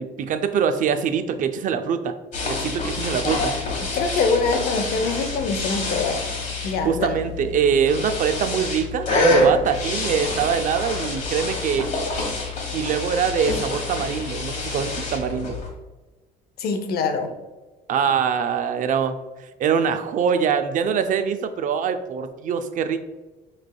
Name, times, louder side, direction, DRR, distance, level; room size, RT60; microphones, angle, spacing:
voice 1, 0.0-2.1 2.5-3.5 6.8-11.9 12.7-15.5 17.9-19.2 19.6-23.0, right 7 dB, 50° right, 9 dB, 0.4 m, -23 dB
sound 1, 2.3-15.7, left 2 dB, 45° left, 1.3 m, -26 dB
voice 2, 3.8-6.2 6.6-7.2 16.6-17.3, left 4 dB, 65° left, 7 dB, 0.6 m, -24 dB
5.9 x 3.2 x 2.2 m, 1.2 s
cardioid pair, 110°, 17 cm